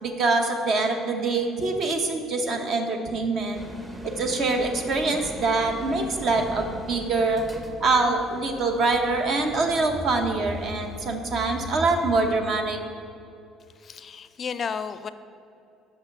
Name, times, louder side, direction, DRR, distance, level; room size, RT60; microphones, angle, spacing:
voice 1, 0.0-3.6 4.0-7.4 7.8-12.8, right 3 dB, 55° right, 4 dB, 0.9 m, -24 dB
sound 1, 3.5-12.4, equal, 20° right, 0.8 m, -39 dB
voice 2, 13.8-15.1, left 6 dB, 40° left, 12 dB, 0.4 m, -32 dB
5.6 x 5.5 x 5.9 m, 2.7 s
supercardioid pair, 95°, 0 cm